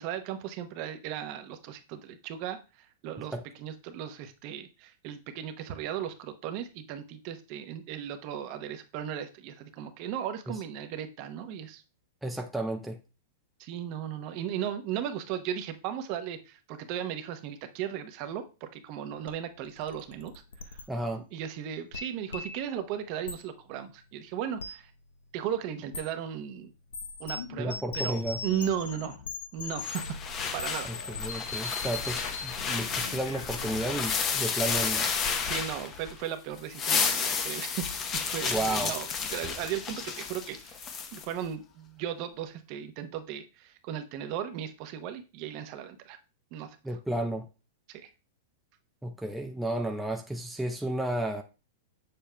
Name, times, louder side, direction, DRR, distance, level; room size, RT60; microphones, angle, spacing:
voice 1, 0.0-11.8 13.6-20.3 20.7-20.8 21.3-24.9 25.3-26.7 27.2-29.2 29.5-30.2 30.5-30.9 35.5-37.9 38.1-40.8 41.1-46.2 46.5-47.0 47.9-48.1, right 9 dB, 45° right, 0.8 m, -36 dB
voice 2, 12.2-13.0 20.9-21.2 27.6-28.4 30.9-35.1 38.5-39.0 46.8-47.5 49.0-51.4, right 1 dB, 5° right, 0.5 m, -32 dB
sound 1, 19.3-19.4 19.6-20.8 21.9-22.7 23.3-23.4 24.6-24.8 25.9-26.0 26.9-34.9, left 4 dB, 90° left, 0.8 m, -40 dB
sound 2, 29.8-36.2 36.6-41.2, left 6 dB, 30° left, 0.8 m, -32 dB
6.9 x 6.8 x 2.2 m
hypercardioid pair, 130°, 0 cm